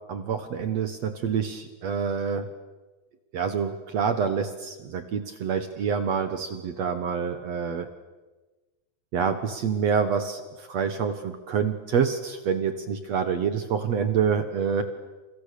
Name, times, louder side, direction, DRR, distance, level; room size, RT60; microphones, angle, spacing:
voice 1, 0.1-2.5 3.3-7.9 9.1-14.8, right 6 dB, 65° right, 9 dB, 1.6 m, -27 dB
29.0 x 28.5 x 6.9 m, 1.2 s
omnidirectional pair, 4.9 m